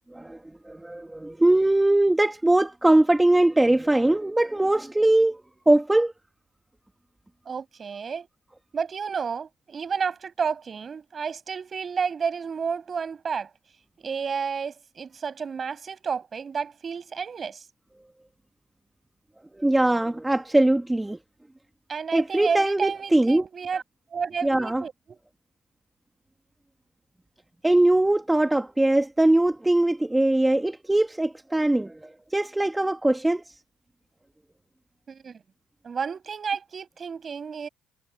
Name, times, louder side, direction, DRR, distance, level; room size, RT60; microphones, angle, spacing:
voice 1, 0.7-5.4 5.7-6.1 19.6-21.2 22.1-23.4 24.4-24.8 27.6-33.4, right 1 dB, 10° right, 1.5 m, -21 dB
voice 2, 7.5-8.3 8.7-13.5 14.0-17.6 21.9-23.8 24.1-25.2 35.1-35.4 35.8-37.7, right 6 dB, 40° right, 7.0 m, -31 dB
supercardioid pair, 85°, 0 cm